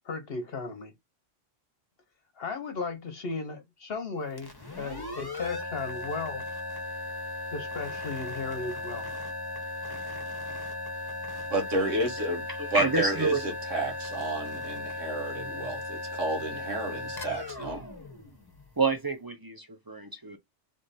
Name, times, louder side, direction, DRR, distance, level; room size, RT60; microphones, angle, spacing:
voice 1, 0.1-0.9 2.4-6.4 7.5-9.1, left 4 dB, 55° left, 1.0 m, -35 dB
sound 1, 4.3-18.9, left 2 dB, 20° left, 1.0 m, -37 dB
voice 2, 11.5-17.8, right 2 dB, 85° right, 1.7 m, -31 dB
voice 3, 12.7-13.4 18.8-20.4, right 3 dB, 25° right, 0.5 m, -28 dB
3.4 x 3.3 x 4.0 m
omnidirectional pair, 1.3 m